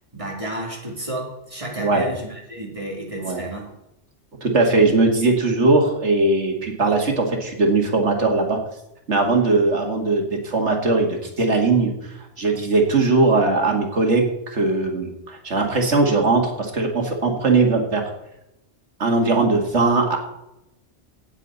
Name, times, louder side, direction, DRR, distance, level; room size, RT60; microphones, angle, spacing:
voice 1, 0.1-3.7, right 1 dB, 30° right, -1 dB, 2.9 m, -31 dB
voice 2, 4.4-8.6 9.1-11.9 12.4-14.2 14.5-18.0 19.0-20.2, right 3 dB, 90° right, 2 dB, 2.3 m, -19 dB
17.0 x 7.4 x 4.1 m, 0.86 s
omnidirectional pair, 1.1 m